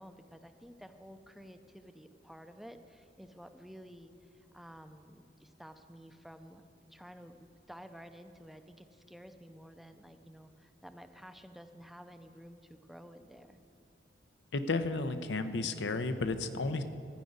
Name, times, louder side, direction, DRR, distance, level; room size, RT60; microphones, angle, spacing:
voice 1, 0.0-6.6 6.9-13.6, equal, ahead, 8 dB, 0.5 m, -52 dB
voice 2, 14.5-16.8, left 3 dB, 90° left, 9 dB, 0.7 m, -33 dB
14.5 x 5.3 x 9.4 m, 2.6 s
head